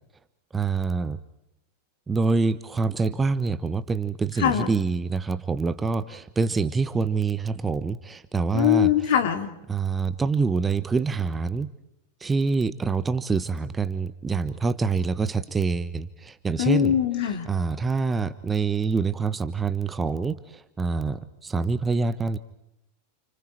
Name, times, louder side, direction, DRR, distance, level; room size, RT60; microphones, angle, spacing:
voice 1, 0.5-1.2 2.1-8.9 9.7-11.7 12.2-16.9 17.4-22.4, right 4 dB, 15° right, 13 dB, 1.2 m, -26 dB
voice 2, 4.4-4.7 8.5-9.5 16.6-17.5, left 10 dB, 55° left, 5 dB, 3.4 m, -22 dB
30.0 x 29.5 x 4.5 m, 0.81 s
figure-of-eight pair, 90°, 0 cm